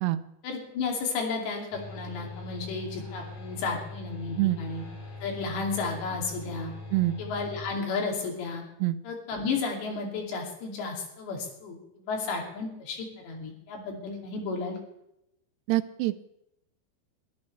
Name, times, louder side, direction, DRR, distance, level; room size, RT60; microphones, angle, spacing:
voice 1, 0.4-4.8 5.2-6.7 7.2-8.6 9.0-14.8, left 4 dB, 85° left, 1 dB, 4.9 m, -33 dB
sound 1, 1.7-7.7, left 3 dB, 45° left, 5.7 m, -41 dB
voice 2, 15.7-16.1, right 16 dB, 80° right, 12 dB, 2.7 m, -25 dB
22.5 x 13.5 x 3.3 m, 0.81 s
omnidirectional pair, 4.9 m